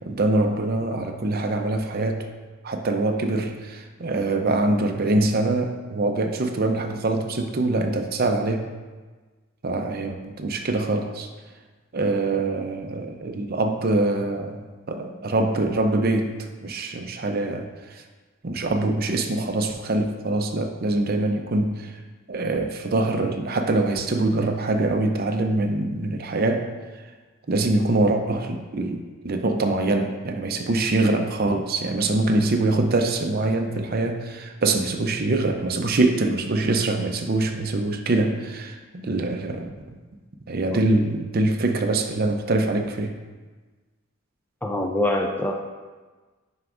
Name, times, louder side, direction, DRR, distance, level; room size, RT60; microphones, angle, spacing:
voice 1, 0.0-2.3 2.6-8.7 9.6-11.3 11.9-16.3 16.6-18.0 18.4-21.9 22.3-26.7 27.5-40.0 40.5-43.1, right 2 dB, 45° right, 5 dB, 0.6 m, -24 dB
voice 2, 44.6-45.6, left 1 dB, 10° left, 2 dB, 0.4 m, -24 dB
9.4 x 5.8 x 2.5 m, 1.3 s
head